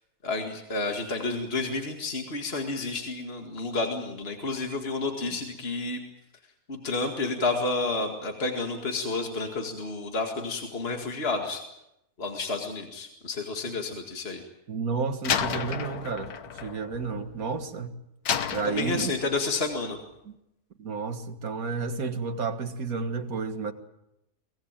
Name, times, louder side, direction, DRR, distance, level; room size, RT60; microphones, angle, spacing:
voice 1, 0.2-6.0 6.7-11.6 12.2-14.4 18.6-20.0, left 3 dB, 40° left, 3 dB, 2.3 m, -30 dB
voice 2, 14.7-16.3 16.6-17.9 18.5-19.2 20.3-20.4 20.8-23.7, right 4 dB, 70° right, 7 dB, 2.1 m, -31 dB
Slam, 15.2-17.7 18.3-19.5, left 8 dB, 80° left, 1.6 m, -31 dB
23.5 x 19.0 x 8.9 m, 0.85 s
omnidirectional pair, 1.6 m